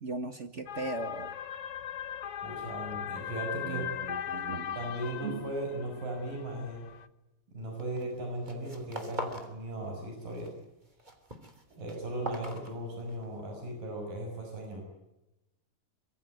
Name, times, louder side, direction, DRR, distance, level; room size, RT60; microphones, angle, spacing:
voice 1, 0.0-1.3 3.6-4.8 5.2-5.5, right 3 dB, 45° right, 9 dB, 0.9 m, -38 dB
sound 1, 0.7-7.1, left 9 dB, 60° left, 1.6 m, -39 dB
voice 2, 2.4-3.9 4.7-6.8 7.5-10.5 11.7-14.8, right 1 dB, 80° right, 2 dB, 8.1 m, -37 dB
sound 2, 7.8-8.1 8.4-9.5 9.8-10.5 10.8-13.3, right 1 dB, 15° right, 3.2 m, -41 dB
25.5 x 23.5 x 9.3 m, 0.96 s
omnidirectional pair, 3.9 m